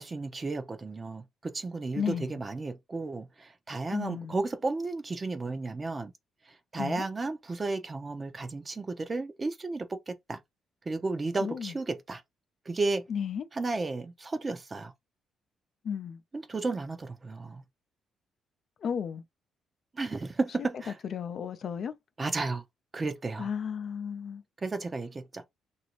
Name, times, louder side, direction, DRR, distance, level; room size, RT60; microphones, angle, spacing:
voice 1, 0.0-6.1 6.7-10.4 10.9-12.2 12.7-13.1 13.5-14.9 16.3-17.6 19.9-21.0 22.2-22.6 22.9-23.5 24.6-25.4, right 3 dB, 30° right, 0.6 m, -33 dB
voice 2, 1.9-2.4 3.9-4.4 6.8-7.0 11.4-11.7 13.1-13.5 15.8-16.2 18.8-19.2 21.1-21.9 23.4-24.4, left 7 dB, 60° left, 0.5 m, -33 dB
3.0 x 2.6 x 2.9 m
cardioid pair, 90°, 0 cm